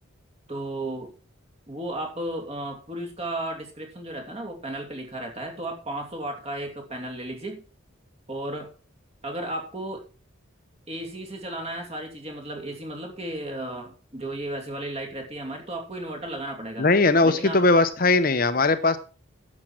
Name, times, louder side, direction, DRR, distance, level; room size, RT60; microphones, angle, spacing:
voice 1, 0.5-1.1 1.7-7.6 8.3-8.7 9.2-10.0 10.9-16.9 17.2-17.6, right 1 dB, 30° right, 3 dB, 2.9 m, -34 dB
voice 2, 16.8-19.0, left 3 dB, 45° left, 11 dB, 0.8 m, -19 dB
10.5 x 7.4 x 6.1 m, 0.37 s
head